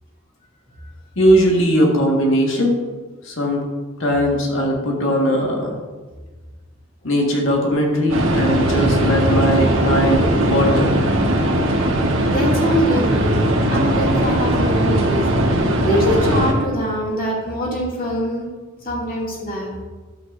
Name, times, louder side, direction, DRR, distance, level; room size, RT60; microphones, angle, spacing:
voice 1, 1.2-2.8 3.2-3.6 4.0-5.7 7.0-10.9, equal, 75° left, 0 dB, 1.8 m, -19 dB
sound 1, 8.1-16.5, right 1 dB, 75° right, 1.4 m, -19 dB
voice 2, 12.3-15.2 15.8-18.5 18.8-19.7, equal, 45° left, -4 dB, 2.6 m, -23 dB
12.0 x 8.5 x 2.7 m, 1.3 s
head